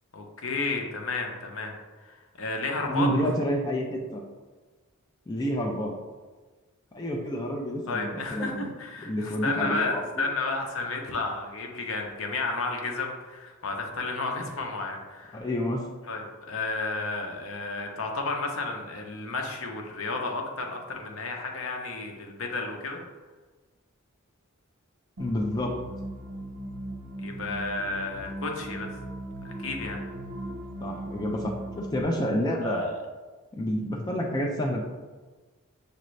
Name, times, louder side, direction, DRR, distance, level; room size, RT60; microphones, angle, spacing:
voice 1, 0.1-1.7 2.0-3.1 7.9-15.4 16.1-23.0 27.2-28.9 29.4-30.0 32.6-32.8, left 3 dB, 70° left, 2 dB, 0.7 m, -32 dB
voice 2, 2.9-4.2 5.3-6.0 6.9-8.7 9.0-10.3 15.3-15.9 25.2-25.8 30.8-33.0 33.6-34.8, equal, 20° left, 0 dB, 0.4 m, -29 dB
sound 1, 25.2-32.0, right 1 dB, 80° right, 0.7 m, -38 dB
6.5 x 2.5 x 3.1 m, 1.3 s
head